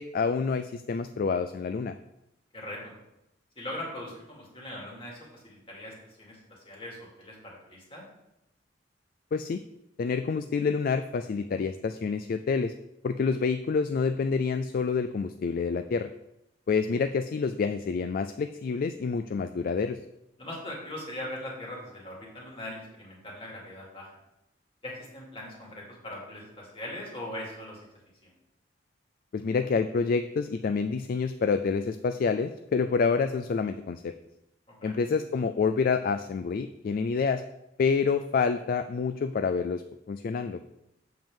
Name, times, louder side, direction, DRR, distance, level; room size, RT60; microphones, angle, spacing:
voice 1, 0.0-1.9 9.3-9.6 10.0-12.7 13.0-16.1 16.7-20.0 29.3-34.1 34.8-37.4 37.8-39.8 40.1-40.6, left 5 dB, 50° left, 9 dB, 0.3 m, -28 dB
voice 2, 2.5-2.9 3.6-8.0 20.4-24.1 24.8-27.9 28.2-28.3 34.7-35.0, left 1 dB, 30° left, -3 dB, 2.5 m, -40 dB
7.9 x 7.1 x 3.7 m, 0.87 s
head